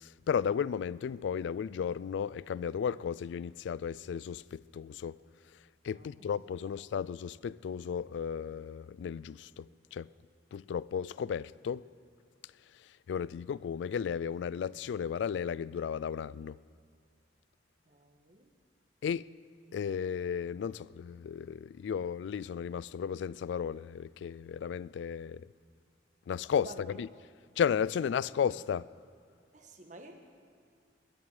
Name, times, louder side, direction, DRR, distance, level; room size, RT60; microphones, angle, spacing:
voice 1, 0.0-5.2 5.8-10.1 10.5-11.9 13.1-16.6 19.0-19.3 19.7-25.5 26.3-26.7 27.0-27.1 27.6-28.9, left 7 dB, 85° left, 0.3 m, -34 dB
voice 2, 17.9-18.5 26.6-27.0 27.9-28.1 29.5-30.1, right 2 dB, 45° right, 1.3 m, -51 dB
21.0 x 11.5 x 4.9 m
head